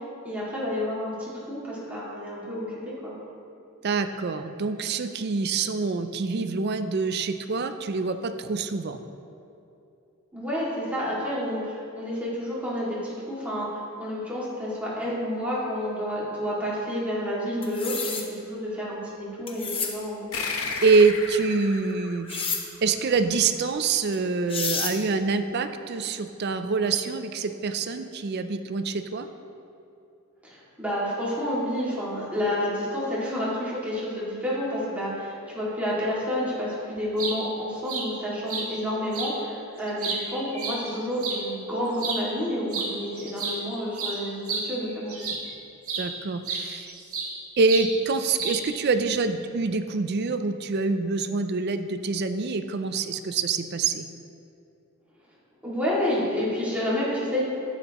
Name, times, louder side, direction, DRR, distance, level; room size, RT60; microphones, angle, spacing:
voice 1, 0.2-3.1 10.3-20.3 30.4-45.1 55.6-57.4, equal, 5° right, -8 dB, 2.2 m, -29 dB
voice 2, 3.8-9.0 20.4-20.5 20.8-22.5 22.8-29.3 46.0-46.9 47.6-54.1, right 4 dB, 50° right, 9 dB, 0.4 m, -25 dB
sound 1, 17.6-18.3 19.5-19.9 22.3-22.6 24.1-24.2 24.5-25.0, left 5 dB, 25° left, 0.8 m, -29 dB
sound 2, 20.3-23.3, left 4 dB, 75° left, 1.0 m, -34 dB
sound 3, 37.0-37.4 37.9-38.1 38.5-38.7 39.1-39.3 39.8-41.4 41.9-42.2 42.7-42.9 43.2-45.5 45.9-46.1 46.5-47.4 47.7-47.9 48.4-48.8, right 4 dB, 80° right, 1.7 m, -31 dB
11.0 x 8.8 x 3.0 m, 2.8 s
head